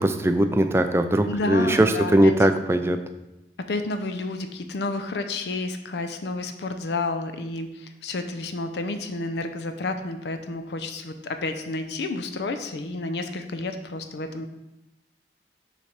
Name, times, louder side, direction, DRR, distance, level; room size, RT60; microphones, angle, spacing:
voice 1, 0.0-3.0, right 1 dB, 15° right, 8 dB, 0.3 m, -20 dB
voice 2, 1.2-2.3 3.7-14.5, left 2 dB, 70° left, 8 dB, 0.5 m, -30 dB
6.8 x 3.3 x 4.9 m, 0.92 s
head